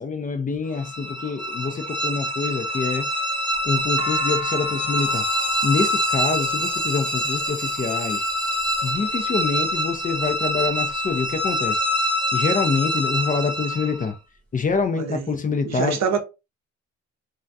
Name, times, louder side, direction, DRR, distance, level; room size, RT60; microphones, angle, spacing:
voice 1, 0.0-3.1 3.6-5.2 5.6-8.2 8.8-11.8 12.3-14.1 14.5-16.0, left 5 dB, 25° left, 0.4 m, -26 dB
sound 1, 0.7-14.1, equal, 5° left, 0.9 m, -25 dB
sound 2, 3.5-7.8 8.6-9.1 9.7-10.3 10.7-10.8 10.9-11.8, left 4 dB, 70° left, 0.8 m, -35 dB
sound 3, 5.0-9.0, right 3 dB, 25° right, 0.8 m, -36 dB
voice 2, 15.0-15.3 15.6-16.2, right 6 dB, 55° right, 0.6 m, -25 dB
2.3 x 2.3 x 2.5 m
supercardioid pair, 70°, 31 cm